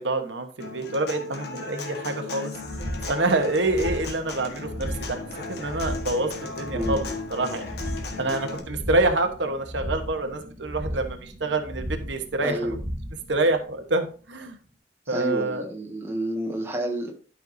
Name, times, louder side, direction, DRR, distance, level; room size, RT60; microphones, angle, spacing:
voice 1, 0.0-2.5 3.1-5.2 5.5-7.0 7.3-7.8 8.2-12.6 13.3-14.6 15.1-15.6, right 2 dB, 85° right, 6 dB, 1.2 m, -26 dB
Human voice / Acoustic guitar, 0.6-8.6, left 4 dB, 65° left, 1.5 m, -36 dB
sound 1, 2.5-14.3, equal, 30° right, 2.3 m, -36 dB
voice 2, 6.7-7.0 8.1-8.2 12.4-12.8 15.1-17.1, right 1 dB, 15° right, 0 dB, 1.6 m, -30 dB
12.0 x 5.7 x 2.7 m, 0.38 s
head